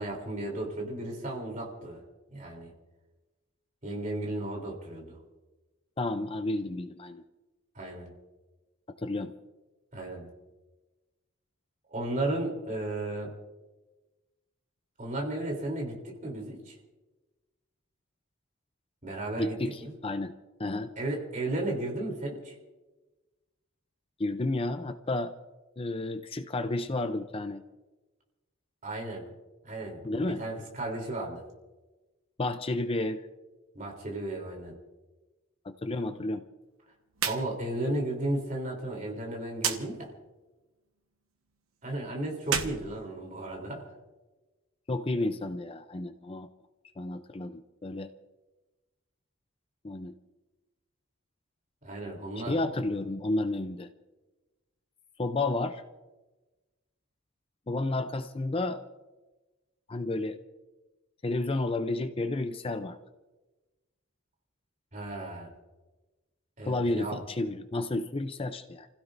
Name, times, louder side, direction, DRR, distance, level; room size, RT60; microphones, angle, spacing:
voice 1, 0.0-2.0 2.3-2.7 3.8-5.2 7.7-8.1 9.9-10.3 11.9-13.4 15.0-16.7 19.0-19.9 21.0-22.5 28.8-29.3 29.6-31.4 33.7-34.7 37.2-40.1 41.8-43.9 51.8-52.6 64.9-65.5 66.6-67.2, right 1 dB, 40° right, 0 dB, 3.3 m, -34 dB
voice 2, 6.0-7.2 9.0-9.3 19.4-20.3 20.6-20.9 24.2-25.3 25.8-27.6 30.0-30.4 32.4-33.3 35.6-36.5 44.9-46.5 47.0-48.1 49.8-50.1 52.4-53.9 55.2-55.8 57.7-58.8 59.9-60.4 61.2-63.0 66.6-68.9, left 2 dB, 25° left, 8 dB, 0.5 m, -31 dB
sound 1, 37.1-37.4 37.7-37.8 39.6-39.8 42.4-43.7, right 7 dB, 85° right, 1.3 m, -31 dB
30.0 x 16.0 x 2.6 m, 1.2 s
head